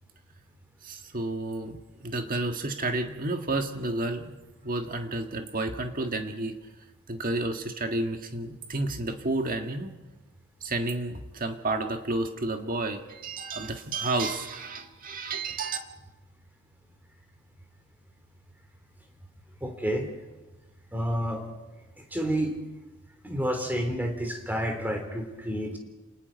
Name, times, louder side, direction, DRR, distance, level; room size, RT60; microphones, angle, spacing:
voice 1, 0.8-4.4 4.6-6.5 7.1-10.0 10.6-15.8, right 2 dB, 40° right, 5 dB, 1.8 m, -31 dB
voice 2, 19.6-20.1 20.9-21.5 22.1-22.5 23.2-25.8, equal, 10° right, 4 dB, 3.0 m, -29 dB
29.0 x 19.5 x 5.3 m, 1.2 s
head